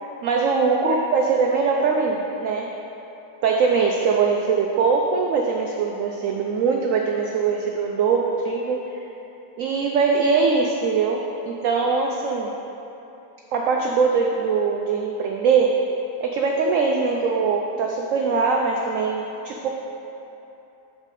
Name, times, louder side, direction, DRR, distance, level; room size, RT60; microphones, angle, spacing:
voice 1, 0.2-2.7 3.4-8.8 9.6-12.5 13.5-15.8 16.2-19.7, right 5 dB, 75° right, 1 dB, 0.7 m, -22 dB
8.1 x 6.5 x 3.7 m, 3.0 s
omnidirectional pair, 1.9 m